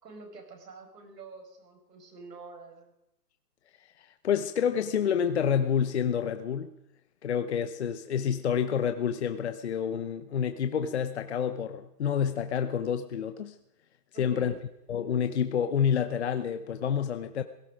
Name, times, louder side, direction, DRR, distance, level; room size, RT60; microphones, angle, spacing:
voice 1, 0.0-2.9 14.1-14.6, right 3 dB, 85° right, 3 dB, 5.7 m, -47 dB
voice 2, 4.2-6.7 7.2-13.5 14.2-14.5 14.9-17.4, left 8 dB, 45° left, 9 dB, 0.9 m, -28 dB
17.0 x 15.5 x 5.1 m, 0.82 s
hypercardioid pair, 175°, 47 cm